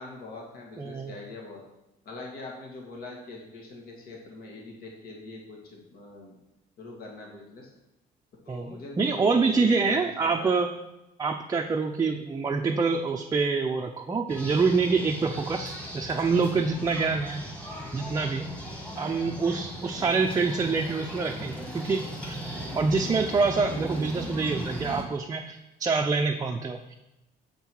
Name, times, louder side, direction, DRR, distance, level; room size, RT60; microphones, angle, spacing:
voice 1, 0.0-1.6 2.1-6.3 6.8-7.7 8.4-10.6, left 2 dB, 60° left, -1 dB, 1.9 m, -43 dB
voice 2, 0.8-1.1 8.5-10.7 11.2-17.4 17.9-18.5 19.0-22.4 22.8-26.9, right 4 dB, 20° right, 2 dB, 0.5 m, -26 dB
sound 1, 14.3-25.0, equal, 5° left, 1.8 m, -37 dB
7.4 x 5.5 x 4.6 m, 0.94 s
cardioid pair, 110°, 17 cm